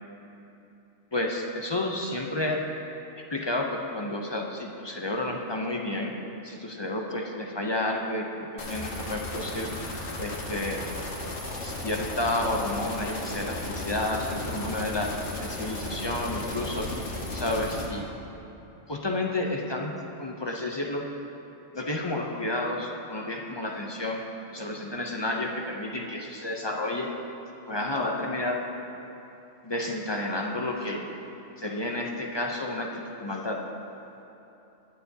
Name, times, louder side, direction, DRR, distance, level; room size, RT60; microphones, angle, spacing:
voice 1, 1.1-2.6 3.3-6.1 6.4-10.9 11.6-15.1 15.4-16.9 17.3-18.1 18.9-19.9 20.2-21.1 21.7-24.2 24.5-27.1 27.7-28.6 29.6-31.1 31.6-33.7, left 1 dB, 30° left, 0 dB, 0.5 m, -31 dB
sound 1, 8.6-17.9, left 1 dB, 70° left, 1.6 m, -35 dB
20.5 x 6.8 x 2.8 m, 2.9 s
omnidirectional pair, 1.2 m